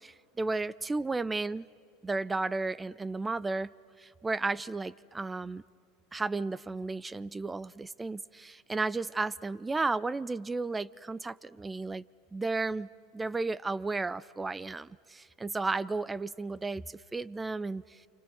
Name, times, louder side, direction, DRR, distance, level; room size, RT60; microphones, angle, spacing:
voice 1, 0.0-1.7 2.0-3.7 4.0-5.6 6.1-12.0 12.3-12.9 13.1-17.8, right 3 dB, 15° right, 20 dB, 0.6 m, -33 dB
29.5 x 26.5 x 6.4 m, 2.4 s
hypercardioid pair, 95°, 0 cm